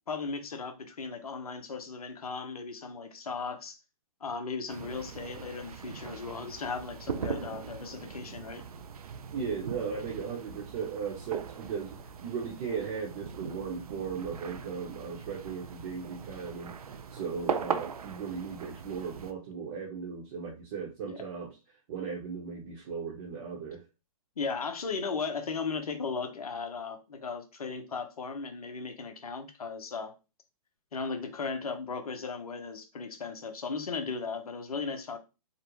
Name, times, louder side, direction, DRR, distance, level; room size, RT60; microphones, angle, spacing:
voice 1, 0.1-3.8 4.2-8.6 21.0-21.2 24.4-30.1 30.9-35.2, left 4 dB, 80° left, 0.7 m, -36 dB
sound 1, 4.7-19.3, right 6 dB, 85° right, 0.4 m, -40 dB
voice 2, 9.3-16.7 17.1-21.5 21.9-23.8, right 6 dB, 40° right, 0.7 m, -37 dB
2.6 x 2.0 x 3.0 m
hypercardioid pair, 125°, 19 cm